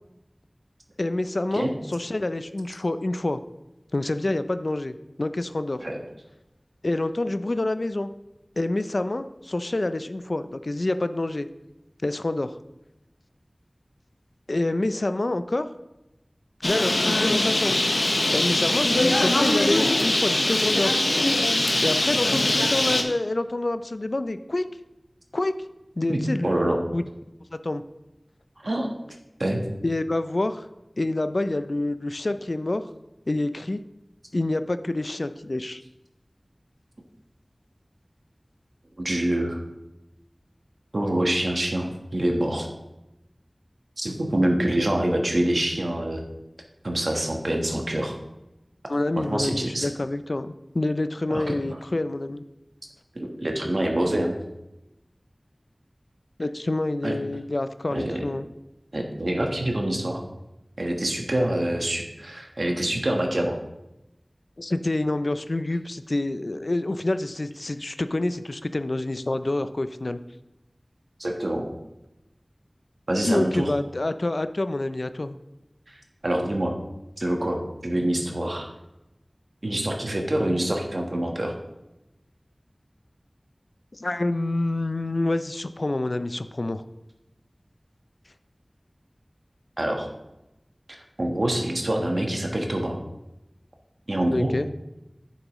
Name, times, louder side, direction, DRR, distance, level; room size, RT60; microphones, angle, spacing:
voice 1, 1.0-3.4 3.9-5.8 6.8-8.1 8.6-11.5 12.0-12.5 14.5-15.7 16.6-17.8 18.3-20.9 21.8-24.7 25.3-25.6 26.0-27.0 27.5-27.8 29.8-30.7 31.0-32.9 33.3-33.8 34.3-35.8 48.9-52.4 56.4-58.5 64.6-70.2 73.3-75.4 83.9-86.8 94.3-94.7, left 2 dB, 65° left, 11 dB, 0.4 m, -27 dB
Bird, 16.6-23.0, left 1 dB, 85° left, 0.9 m, -22 dB
voice 2, 26.1-26.8 28.6-28.9 29.4-29.6 39.0-39.6 40.9-42.7 44.0-46.2 46.8-48.2 49.2-49.9 51.3-51.5 53.1-54.4 57.0-57.1 57.9-58.2 58.9-60.2 60.8-63.6 71.2-71.7 73.1-73.7 75.9-76.0 76.2-76.8 77.2-78.7 79.6-81.5 89.8-90.1 91.2-93.0 94.1-94.5, right 1 dB, 65° right, 2 dB, 1.3 m, -26 dB
9.0 x 7.1 x 3.1 m, 0.93 s
wide cardioid pair, 45°, 0 cm